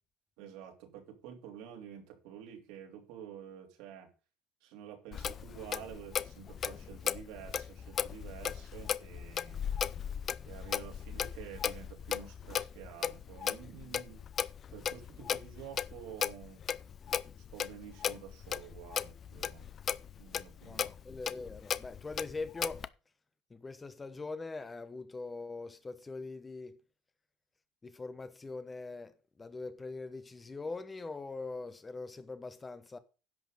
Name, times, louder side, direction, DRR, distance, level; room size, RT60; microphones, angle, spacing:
voice 1, 0.4-4.1 4.6-9.7 10.4-14.2 14.7-16.6 17.4-19.7 20.2-20.9, right 9 dB, 75° right, 3.0 m, -49 dB
Clock, 5.1-22.9, left 8 dB, 35° left, 0.5 m, -37 dB
voice 2, 20.6-22.9 23.5-26.8 27.8-33.0, left 3 dB, 15° left, 0.9 m, -42 dB
10.5 x 5.9 x 6.3 m
cardioid pair, 140°, 0 cm